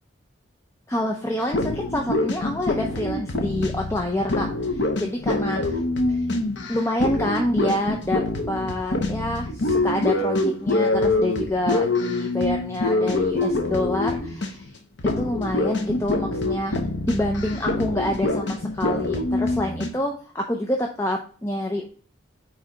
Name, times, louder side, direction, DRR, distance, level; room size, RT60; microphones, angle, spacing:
voice 1, 0.9-5.8 6.1-6.2 6.7-8.2 8.5-14.7 15.2-16.8 17.1-21.9, left 1 dB, 15° left, 1 dB, 0.5 m, -27 dB
sound 1, 1.4-14.7 15.0-19.9, left 2 dB, 70° left, 1.0 m, -25 dB
8.8 x 3.2 x 3.9 m, 0.43 s
head